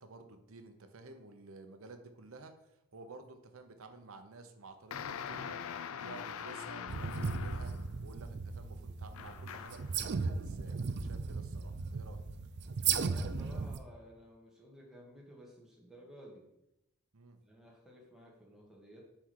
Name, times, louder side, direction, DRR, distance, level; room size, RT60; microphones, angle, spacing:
voice 1, 0.0-5.0 5.3-7.7 8.0-12.3 17.1-17.4, right 3 dB, 75° right, 7 dB, 0.8 m, -52 dB
sound 1, 4.9-7.9 9.1-9.9, left 7 dB, 70° left, 0.4 m, -43 dB
sound 2, 6.9-13.8, right 5 dB, 50° right, 0.4 m, -36 dB
voice 2, 13.0-16.5 17.4-19.1, equal, ahead, -2 dB, 1.3 m, -54 dB
5.9 x 4.3 x 4.7 m, 0.88 s
head